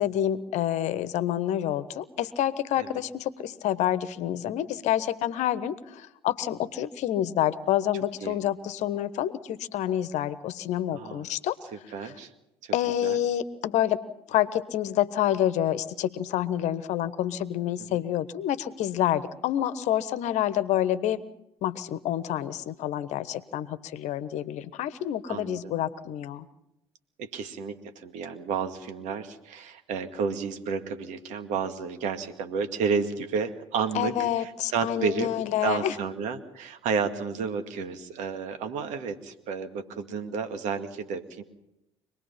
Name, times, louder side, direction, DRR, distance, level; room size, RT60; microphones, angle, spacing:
voice 1, 0.0-11.5 12.0-12.1 12.7-14.0 14.3-21.2 21.6-26.4 33.9-35.9, left 11 dB, 60° left, 15 dB, 1.2 m, -28 dB
voice 2, 10.9-11.2 11.9-12.3 12.6-12.7 13.0-13.2 17.9-18.0 25.3-25.7 27.2-35.3 35.6-41.4, right 5 dB, 65° right, 8 dB, 2.2 m, -31 dB
25.5 x 20.0 x 5.7 m, 0.86 s
hypercardioid pair, 55°, 13 cm